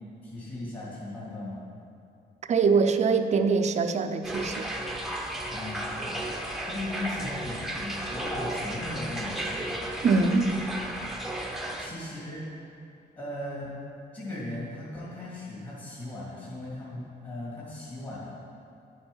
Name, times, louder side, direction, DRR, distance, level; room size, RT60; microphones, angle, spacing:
voice 1, 0.2-1.6 5.5-6.2 6.7-9.8 11.4-12.4 13.1-13.7 14.1-18.3, left 1 dB, 30° left, -7 dB, 2.3 m, -37 dB
voice 2, 2.5-4.7 10.0-10.5, right 4 dB, 40° right, 8 dB, 0.5 m, -23 dB
sound 1, 4.2-11.9, right 1 dB, ahead, 0.8 m, -34 dB
10.0 x 7.1 x 5.4 m, 2.6 s
wide cardioid pair, 165°, 18 cm